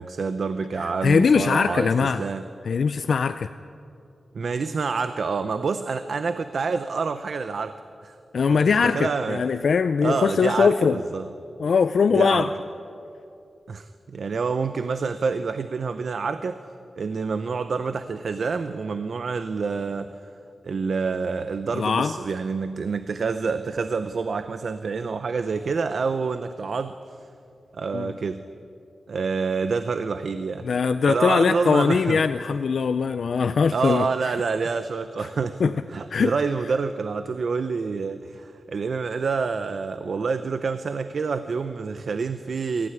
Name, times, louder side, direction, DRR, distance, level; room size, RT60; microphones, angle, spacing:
voice 1, 0.0-2.5 4.3-7.8 8.0-8.2 8.5-9.4 10.0-11.3 12.1-12.5 13.7-16.6 16.9-20.3 20.6-27.0 27.7-28.5 29.1-30.7 31.1-32.2 33.7-42.9, right 4 dB, 60° right, 10 dB, 0.7 m, -27 dB
voice 2, 0.8-2.2 2.6-3.5 8.3-11.0 11.6-12.5 21.7-22.1 27.9-28.1 30.6-34.4 35.2-35.3 35.6-35.7 36.1-36.3, left 5 dB, 65° left, 10 dB, 0.5 m, -21 dB
22.5 x 15.0 x 9.6 m, 2.5 s
wide cardioid pair, 155°, 0 cm